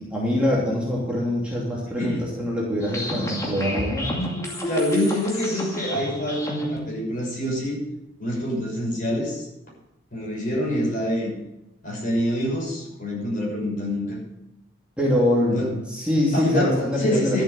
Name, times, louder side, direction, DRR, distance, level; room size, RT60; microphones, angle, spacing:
voice 1, 0.0-4.2 15.0-17.4, left 1 dB, 5° right, -5 dB, 2.7 m, -24 dB
sound 1, 2.8-6.8, left 1 dB, 15° left, 2.4 m, -29 dB
voice 2, 4.6-7.8 8.2-9.5 10.1-11.3 11.8-14.2 15.5-15.7 16.3-17.4, equal, 40° left, -3 dB, 6.3 m, -26 dB
13.0 x 8.0 x 7.1 m, 0.89 s
head